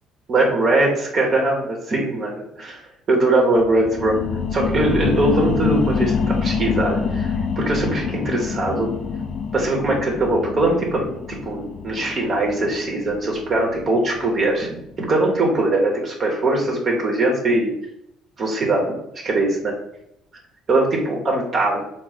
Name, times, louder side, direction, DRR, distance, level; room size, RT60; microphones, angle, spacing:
voice 1, 0.3-2.8 3.1-4.2 4.5-8.9 9.5-14.7 15.0-17.7 18.4-19.7 20.7-21.8, right 2 dB, 45° right, -1 dB, 0.9 m, -21 dB
sound 1, 3.5-14.7 15.1-15.2, left 5 dB, 50° left, 0.4 m, -26 dB
3.9 x 2.0 x 4.1 m, 0.78 s
figure-of-eight pair, 50°, 0 cm